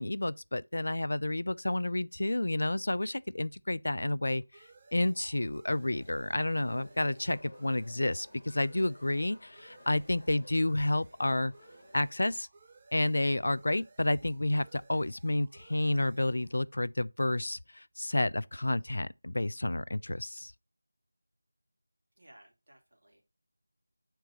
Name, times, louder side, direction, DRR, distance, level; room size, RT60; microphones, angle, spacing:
voice 1, 0.0-11.5 11.9-12.5 12.9-20.5, left 1 dB, 65° left, 0.3 m, -30 dB
sound 1, 2.8-18.0, right 3 dB, 25° right, 0.6 m, -61 dB
sound 2, 5.7-12.4, left 1 dB, 50° left, 2.0 m, -57 dB
voice 2, 22.2-23.2, right 1 dB, 55° right, 2.5 m, -59 dB
6.2 x 4.5 x 4.2 m
figure-of-eight pair, 170°, 0 cm